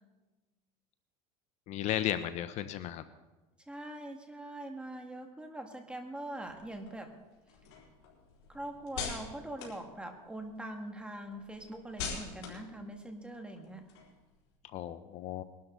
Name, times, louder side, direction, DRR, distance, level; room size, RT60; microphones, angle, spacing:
voice 1, 1.7-3.0 14.7-15.4, left 11 dB, 50° left, 12 dB, 0.8 m, -34 dB
voice 2, 3.7-7.1 8.5-13.9, right 1 dB, 5° right, 4 dB, 2.1 m, -43 dB
sound 1, 6.5-10.6 11.0-14.5, left 6 dB, 80° left, 4.0 m, -44 dB
21.5 x 12.5 x 4.0 m, 1.1 s
supercardioid pair, 120°, 15 cm